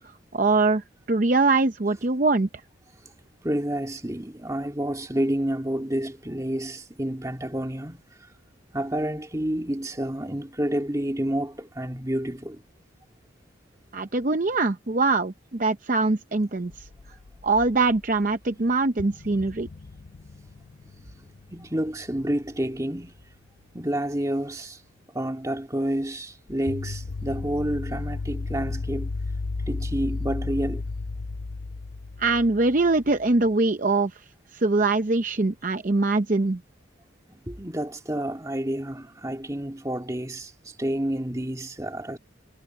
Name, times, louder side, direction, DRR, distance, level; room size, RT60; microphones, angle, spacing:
voice 1, 0.3-2.5 13.9-16.9 17.4-19.7 32.2-34.1 34.5-36.6, right 3 dB, 40° right, 0.7 m, -23 dB
voice 2, 3.4-8.0 8.7-12.6 21.5-23.1 23.7-24.8 25.1-29.1 29.7-30.9 37.4-42.2, right 1 dB, 15° right, 2.2 m, -29 dB
sound 1, 16.7-18.2 18.5-18.6 19.0-23.4 26.5-33.5, left 3 dB, 60° left, 0.6 m, -34 dB
head